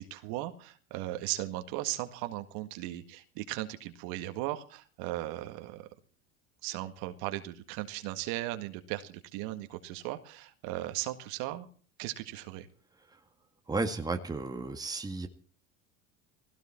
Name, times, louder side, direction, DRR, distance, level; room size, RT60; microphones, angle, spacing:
voice 1, 0.0-5.9 6.6-11.7 12.0-12.7, right 16 dB, 65° right, 8 dB, 1.9 m, -37 dB
voice 2, 13.7-15.3, right 3 dB, 10° right, 5 dB, 1.8 m, -33 dB
19.0 x 17.0 x 4.4 m, 0.41 s
supercardioid pair, 100°, 39 cm